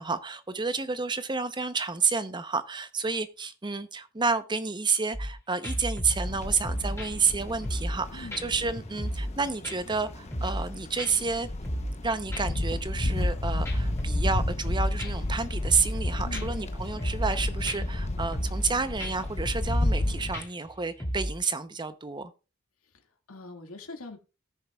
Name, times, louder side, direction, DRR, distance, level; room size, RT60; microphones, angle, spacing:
voice 1, 0.0-11.5 12.0-22.3, right 4 dB, 20° right, 0.7 m, -30 dB
sound 1, 5.1-5.3 5.6-8.0 8.3-8.4 8.8-9.4 9.6-10.7 11.0-11.1 11.4-12.0 12.3-13.4 13.7-15.3 15.7-16.0 16.3-16.4 16.8-17.4 17.7-18.0 18.3-18.7 19.0-19.1 19.5-20.0 20.3-21.4, equal, 15° left, 2.6 m, -33 dB
sound 2, 6.2-20.3, left 1 dB, 30° left, 0.7 m, -32 dB
voice 2, 8.1-8.5 16.2-16.6 23.3-24.2, left 3 dB, 90° left, 2.0 m, -42 dB
18.0 x 6.5 x 2.3 m
head